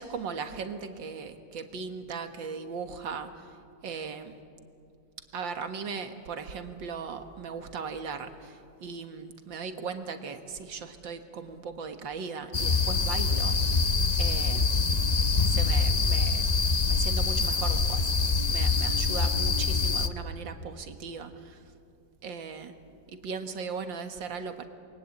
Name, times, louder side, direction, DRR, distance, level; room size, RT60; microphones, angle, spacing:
voice 1, 0.0-3.5 3.8-4.4 5.3-13.6 14.2-14.7 15.4-16.5 16.9-18.2 18.5-21.6 22.2-22.7 23.1-24.7, right 5 dB, 80° right, 7 dB, 2.3 m, -38 dB
sound 1, 12.5-20.1, left 4 dB, 40° left, 0.6 m, -25 dB
28.5 x 22.5 x 8.6 m, 2.4 s
omnidirectional pair, 2.0 m